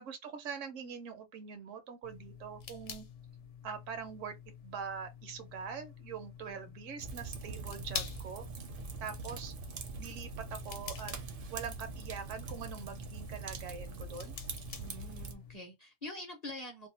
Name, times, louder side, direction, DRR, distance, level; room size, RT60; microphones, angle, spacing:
voice 1, 0.0-3.1 3.6-4.4 4.6-8.4 9.0-9.5 10.0-11.1 11.5-14.3, right 6 dB, 75° right, 1.0 m, -43 dB
sound 1, 2.0-15.6, left 6 dB, 70° left, 0.9 m, -48 dB
Fire, 7.0-15.3, right 4 dB, 60° right, 0.6 m, -43 dB
voice 2, 14.8-16.9, left 1 dB, 40° left, 0.6 m, -45 dB
2.7 x 2.1 x 2.7 m
omnidirectional pair, 1.3 m